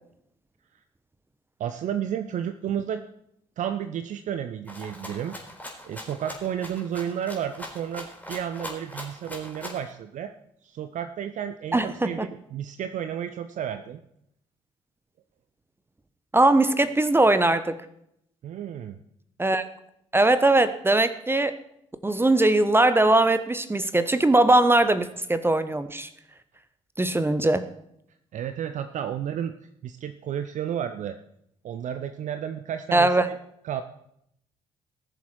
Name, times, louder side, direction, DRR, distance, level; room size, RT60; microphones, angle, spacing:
voice 1, 1.6-3.0 3.6-5.4 5.8-10.3 10.6-14.0 18.4-19.0 28.3-29.5 29.8-31.2 31.6-33.1 33.6-33.8, right 9 dB, 50° right, 9 dB, 0.7 m, -32 dB
Rattle (instrument), 4.7-9.9, left 1 dB, 10° left, 4.4 m, -40 dB
voice 2, 11.7-12.3 16.3-17.8 19.4-19.6 20.1-21.6 22.0-26.1 27.0-27.7 32.9-33.3, right 2 dB, 15° right, 12 dB, 1.0 m, -20 dB
19.0 x 7.3 x 4.5 m, 0.75 s
figure-of-eight pair, 45°, 16 cm